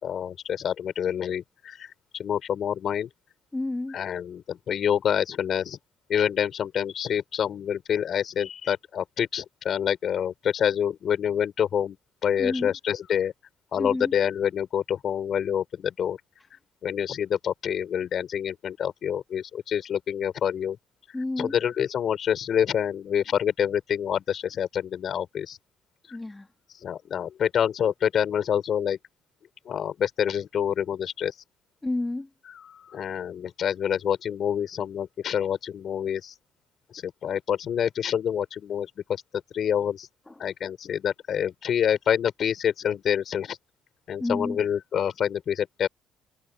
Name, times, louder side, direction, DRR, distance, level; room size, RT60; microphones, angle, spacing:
voice 1, 0.0-3.1 3.9-5.8 6.1-12.0 12.2-13.3 13.7-16.2 16.5-20.8 21.4-25.6 26.1-26.2 26.8-29.0 29.6-31.3 32.5-36.3 36.9-39.2 39.5-40.1 40.4-43.6 44.1-45.9, left 9 dB, 60° left, 4.9 m, -27 dB
voice 2, 3.5-3.9 12.4-12.7 13.8-14.1 21.1-21.5 26.1-26.5 31.8-32.3 40.3-40.4 44.2-44.6, left 2 dB, 15° left, 3.1 m, -30 dB
supercardioid pair, 75°, 0 cm